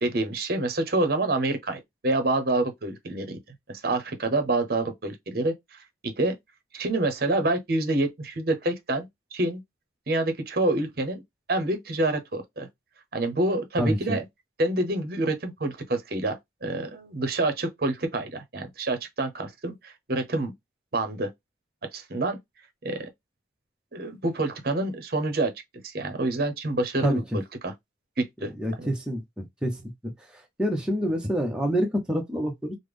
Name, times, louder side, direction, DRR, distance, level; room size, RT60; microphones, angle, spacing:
voice 1, 0.0-3.4 3.7-5.8 6.0-6.3 6.7-9.1 9.3-9.6 10.1-11.2 11.5-12.7 13.1-14.2 14.6-20.5 20.9-21.3 21.9-22.4 22.8-23.1 23.9-25.5 25.8-27.7 28.2-28.5 28.8-28.9, right 2 dB, 55° right, 0.7 m, -27 dB
voice 2, 13.8-14.2 27.0-27.2 28.6-29.8 30.6-32.7, equal, 5° right, 0.6 m, -27 dB
3.3 x 2.0 x 3.4 m
head